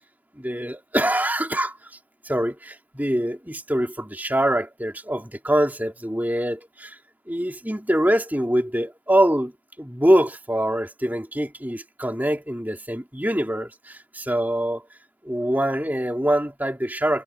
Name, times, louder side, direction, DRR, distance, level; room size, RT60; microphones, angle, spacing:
voice 1, 0.4-1.8 2.2-7.0 7.3-9.5 9.8-14.8 15.2-17.2, right 1 dB, 10° right, 3.1 m, -24 dB
head